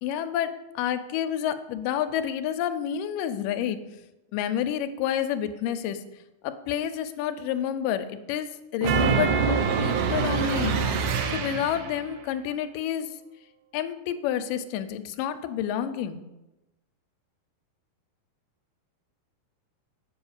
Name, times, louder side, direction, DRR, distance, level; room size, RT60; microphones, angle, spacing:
voice 1, 0.0-3.8 4.3-6.0 6.4-10.8 11.3-13.1 13.7-16.2, left 10 dB, 80° left, 10 dB, 2.2 m, -29 dB
sound 1, 8.8-12.0, right 6 dB, 75° right, 2.3 m, -25 dB
7.6 x 4.8 x 7.1 m, 0.99 s
omnidirectional pair, 3.9 m